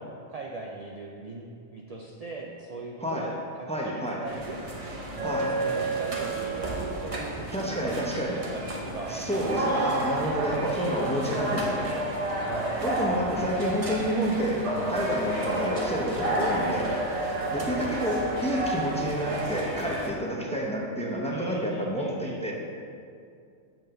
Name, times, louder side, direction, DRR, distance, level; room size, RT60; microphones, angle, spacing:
voice 1, 0.0-4.6 5.4-8.1 8.3-9.8 10.4-10.9 12.4-12.9 17.5-17.7 21.3-22.5, right 3 dB, 70° right, -2 dB, 0.3 m, -39 dB
voice 2, 3.0-3.3 3.7-4.2 5.2-5.6 7.5-8.4 9.1-12.1 12.8-17.0 17.5-22.5, equal, 5° left, -3 dB, 0.6 m, -29 dB
sound 1, 4.2-20.1, right 1 dB, 30° right, 0.7 m, -30 dB
7.2 x 4.0 x 6.6 m, 2.3 s
omnidirectional pair, 1.4 m